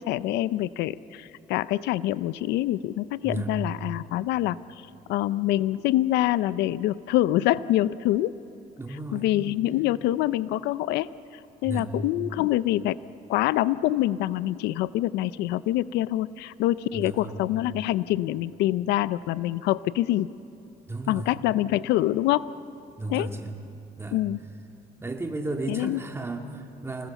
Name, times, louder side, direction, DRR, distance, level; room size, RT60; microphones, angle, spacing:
voice 1, 0.0-4.6 5.1-8.3 9.1-11.1 11.6-13.0 13.3-20.3 21.1-22.5 23.1-23.3 24.1-24.4 25.7-26.0, left 14 dB, 85° left, 17 dB, 0.5 m, -25 dB
voice 2, 3.2-3.5 8.8-9.3 11.6-11.9 16.9-17.4 20.9-21.3 23.0-23.5 24.0-24.2 25.0-27.1, right 2 dB, 15° right, 3 dB, 2.2 m, -34 dB
26.5 x 19.0 x 7.1 m, 2.7 s
cardioid pair, 110°, 17 cm